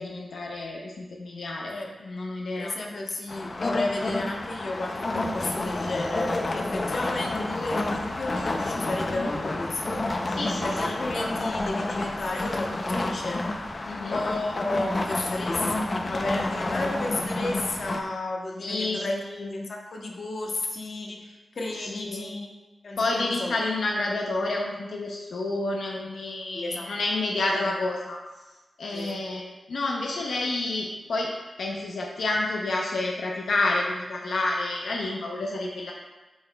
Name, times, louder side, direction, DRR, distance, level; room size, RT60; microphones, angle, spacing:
voice 1, 0.0-2.7 10.4-11.0 13.8-14.2 16.5-16.7 18.6-19.5 21.8-22.3 23.0-28.2 28.8-31.3 31.6-35.9, left 2 dB, 90° left, -1 dB, 0.6 m, -29 dB
voice 2, 2.6-10.4 10.6-13.4 14.1-19.2 19.5-22.5 22.8-23.5 26.5-26.9 28.9-29.2, left 2 dB, 60° left, 0 dB, 0.9 m, -33 dB
sound 1, 3.3-18.0, left 2 dB, 35° left, 0.5 m, -29 dB
8.5 x 5.8 x 2.3 m, 1.2 s
wide cardioid pair, 135°, 0 cm